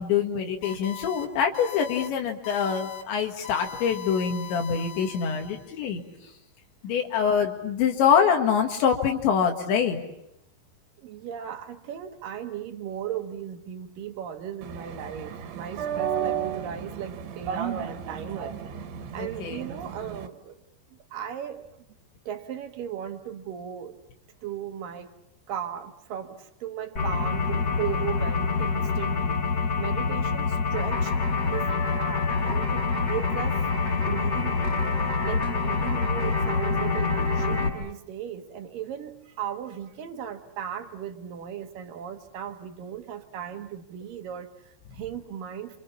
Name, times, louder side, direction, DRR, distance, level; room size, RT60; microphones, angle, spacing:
voice 1, 0.0-6.0 6.8-10.0 19.2-19.7, left 7 dB, 75° left, 3 dB, 4.1 m, -25 dB
sound 1, 0.6-1.3 1.5-2.1 2.4-3.0 3.4-5.8, left 11 dB, 60° left, 3.8 m, -40 dB
voice 2, 11.0-18.6 19.1-20.6 21.1-21.7 22.3-24.0 24.4-25.1 25.5-29.4 29.8-31.1 31.4-33.6 33.9-34.8 35.2-45.8, right 9 dB, 60° right, 6 dB, 2.6 m, -36 dB
sound 2, 14.6-20.3, right 8 dB, 80° right, 3.9 m, -33 dB
sound 3, 27.0-37.7, left 4 dB, 20° left, 4.3 m, -26 dB
29.0 x 26.5 x 7.1 m, 0.81 s
omnidirectional pair, 5.3 m